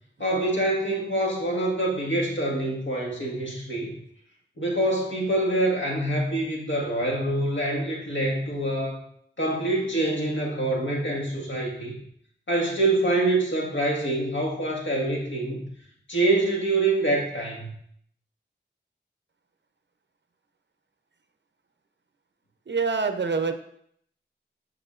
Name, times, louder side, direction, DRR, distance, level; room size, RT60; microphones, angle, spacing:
voice 1, 0.2-4.0 4.6-9.0 9.4-11.9 12.5-15.6 16.1-17.7, right 2 dB, 70° left, -2 dB, 1.7 m, -25 dB
voice 2, 22.7-23.5, right 4 dB, 60° right, 7 dB, 0.7 m, -26 dB
11.0 x 4.9 x 2.5 m, 0.67 s
wide cardioid pair, 55°, 20 cm